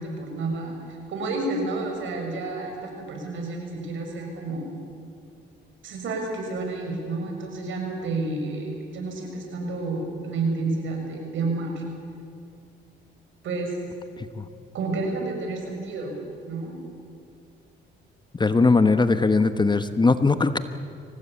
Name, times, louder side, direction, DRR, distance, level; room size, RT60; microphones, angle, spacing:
voice 1, 0.0-4.7 5.8-11.8 13.4-13.7 14.7-16.1 16.5-16.7, right 3 dB, 75° right, 2 dB, 6.6 m, -30 dB
voice 2, 18.4-20.6, left 3 dB, 20° left, 10 dB, 1.2 m, -19 dB
24.0 x 18.5 x 8.6 m, 2.5 s
cardioid pair, 90°, 20 cm